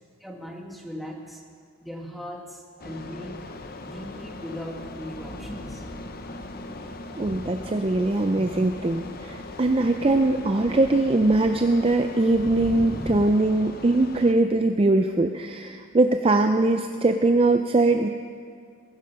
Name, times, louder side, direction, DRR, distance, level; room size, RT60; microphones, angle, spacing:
voice 1, 0.2-1.4 1.8-3.4 3.8-5.8, equal, ahead, -1 dB, 1.7 m, -39 dB
sound 1, 2.8-14.3, left 2 dB, 45° left, 0.8 m, -40 dB
Thunder, 3.6-13.1, equal, 20° left, 1.9 m, -42 dB
voice 2, 7.2-18.1, right 2 dB, 25° right, 6 dB, 0.4 m, -21 dB
20.0 x 12.0 x 5.7 m, 2.2 s
head